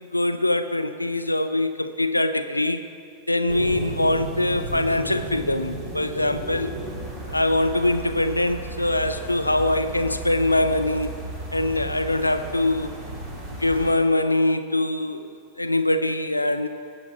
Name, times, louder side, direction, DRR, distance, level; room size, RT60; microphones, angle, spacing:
voice 1, 0.1-2.8 3.3-6.7 7.3-11.1 11.5-12.9 13.6-16.7, left 1 dB, 85° left, 10 dB, 0.5 m, -23 dB
sound 1, 3.5-13.9, right 2 dB, 30° right, 2.5 m, -34 dB
19.0 x 8.0 x 4.6 m, 2.4 s
figure-of-eight pair, 90°, 0 cm